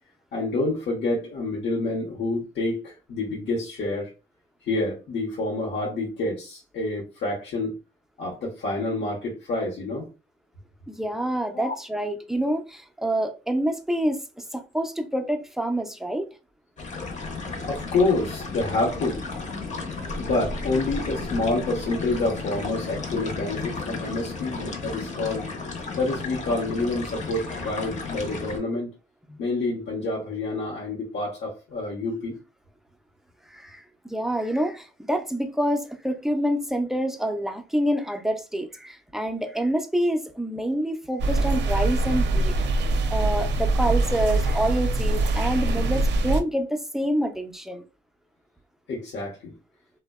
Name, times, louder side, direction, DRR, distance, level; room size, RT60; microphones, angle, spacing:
voice 1, 0.3-4.1 4.6-7.7 8.2-10.1 11.5-11.8 17.7-19.2 20.1-25.4 26.0-28.9 29.4-32.4 48.9-49.5, left 2 dB, 65° left, 0.8 m, -28 dB
voice 2, 10.9-14.2 14.5-16.3 27.6-27.7 29.3-29.4 33.5-42.6 43.1-47.8, right 1 dB, ahead, 0.4 m, -27 dB
sound 1, 16.8-28.6, left 3 dB, 35° left, 0.7 m, -33 dB
sound 2, 41.2-46.4, right 2 dB, 65° right, 0.5 m, -23 dB
2.6 x 2.1 x 2.2 m
cardioid pair, 90°, 20 cm